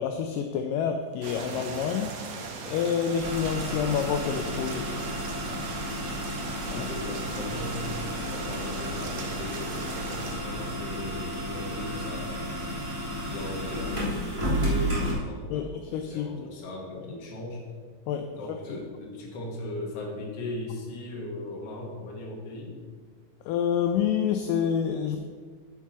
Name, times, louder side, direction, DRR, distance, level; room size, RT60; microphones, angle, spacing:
voice 1, 0.0-2.2 2.7-4.9 6.7-6.9 15.5-16.5 18.1-18.3 18.7-18.8 23.5-25.2, left 8 dB, 80° left, 6 dB, 2.1 m, -28 dB
sound 1, 1.2-10.3, right 4 dB, 75° right, 2.7 m, -39 dB
sound 2, 3.2-15.1, equal, 10° right, 2.6 m, -32 dB
voice 2, 6.7-12.4 13.0-17.6 18.3-22.8, left 2 dB, 50° left, -1 dB, 2.3 m, -38 dB
9.3 x 5.7 x 5.9 m, 1.6 s
omnidirectional pair, 4.1 m